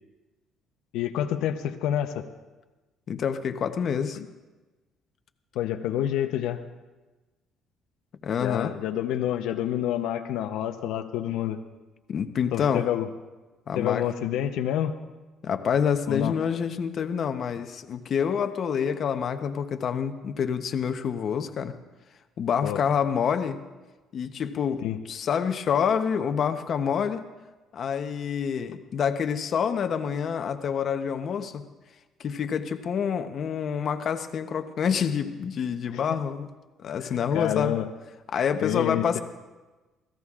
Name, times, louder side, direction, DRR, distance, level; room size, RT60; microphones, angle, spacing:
voice 1, 0.9-2.3 4.2-4.3 5.5-6.6 8.4-11.6 12.5-13.1 13.8-15.0 16.1-16.4 22.6-22.8 24.8-25.0 35.9-36.2 37.0-37.9 38.6-39.1, left 11 dB, 85° left, 6 dB, 0.7 m, -28 dB
voice 2, 3.1-4.2 8.2-8.7 12.1-12.9 13.7-14.0 15.4-21.7 22.4-23.6 24.1-27.2 27.7-31.6 32.2-36.5 36.8-37.8 38.3-39.2, left 7 dB, 45° left, 8 dB, 0.8 m, -27 dB
27.0 x 16.5 x 2.4 m, 1.2 s
cardioid pair, 145°, 0 cm